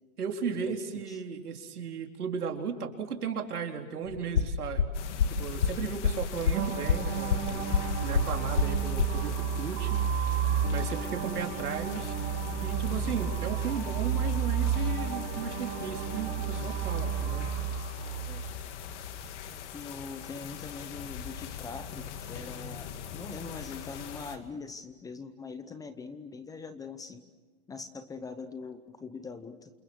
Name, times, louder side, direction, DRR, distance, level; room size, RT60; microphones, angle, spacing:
voice 1, 0.2-4.9 5.3-12.1 12.6-17.5, right 6 dB, 90° right, 3 dB, 4.1 m, -36 dB
sound 1, 4.1-9.2, left 6 dB, 85° left, 2.1 m, -26 dB
sound 2, 4.9-24.4, left 8 dB, 50° left, 2.6 m, -42 dB
sound 3, 6.5-18.5, right 7 dB, 40° right, 3.7 m, -32 dB
voice 2, 19.7-27.2 27.7-29.7, left 4 dB, 10° left, 11 dB, 0.8 m, -42 dB
28.5 x 28.0 x 6.4 m, 1.3 s
hypercardioid pair, 145°, 44 cm